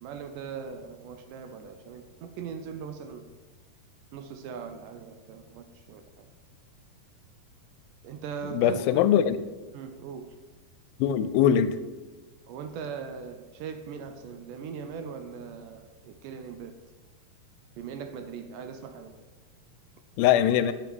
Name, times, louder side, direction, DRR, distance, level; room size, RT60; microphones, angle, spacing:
voice 1, 0.0-3.3 4.1-6.3 8.0-9.1 9.7-10.4 12.5-16.7 17.8-19.2, right 6 dB, 75° right, 7 dB, 2.1 m, -40 dB
voice 2, 8.5-9.4 11.0-11.8 20.2-20.7, left 10 dB, 85° left, 13 dB, 2.3 m, -21 dB
8.6 x 6.3 x 6.1 m, 1.2 s
omnidirectional pair, 4.1 m